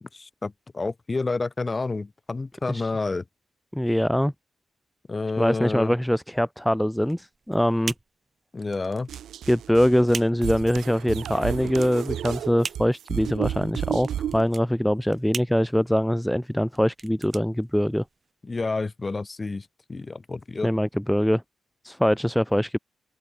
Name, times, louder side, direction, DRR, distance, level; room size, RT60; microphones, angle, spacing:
voice 1, 0.0-3.2 5.1-5.9 8.5-9.1 18.4-20.7, left 3 dB, 25° left, 2.6 m, -29 dB
voice 2, 3.7-4.3 5.4-7.9 9.5-18.0 20.6-21.4 21.8-22.8, equal, ahead, 0.4 m, -23 dB
sound 1, 7.0-18.3, right 4 dB, 30° right, 3.2 m, -41 dB
sound 2, 9.1-14.4, right 10 dB, 80° right, 1.1 m, -32 dB
open air
cardioid pair, 125°, 0 cm